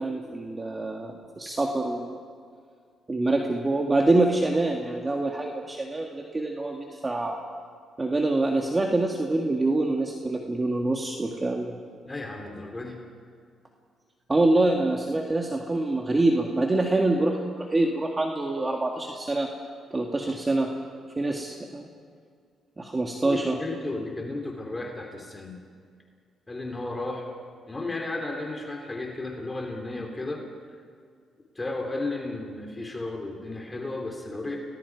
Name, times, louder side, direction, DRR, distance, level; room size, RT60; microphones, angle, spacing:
voice 1, 0.0-2.2 3.1-7.4 8.0-11.7 14.3-19.5 19.9-20.7 21.2-21.9 22.8-23.5, right 2 dB, 20° right, 1 dB, 1.9 m, -25 dB
voice 2, 12.0-13.0 23.2-25.6 26.5-27.2 27.7-30.4 31.5-34.6, left 2 dB, 20° left, 1 dB, 3.3 m, -34 dB
30.0 x 19.5 x 4.8 m, 2.1 s
cardioid pair, 90°, 0 cm